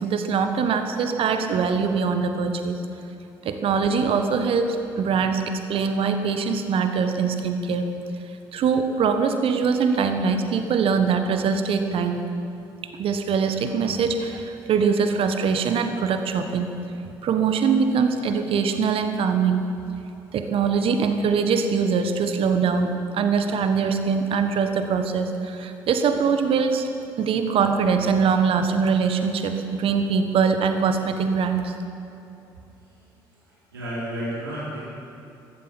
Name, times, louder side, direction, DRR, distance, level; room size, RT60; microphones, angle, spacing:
voice 1, 0.0-2.8 3.4-5.4 5.7-7.9 8.5-12.2 13.0-16.7 17.2-19.6 20.3-26.9 27.2-31.7, right 5 dB, 50° right, 7 dB, 1.3 m, -22 dB
voice 2, 33.7-34.9, equal, 85° right, -8 dB, 4.2 m, -31 dB
14.5 x 12.5 x 7.4 m, 2.8 s
figure-of-eight pair, 50°, 12 cm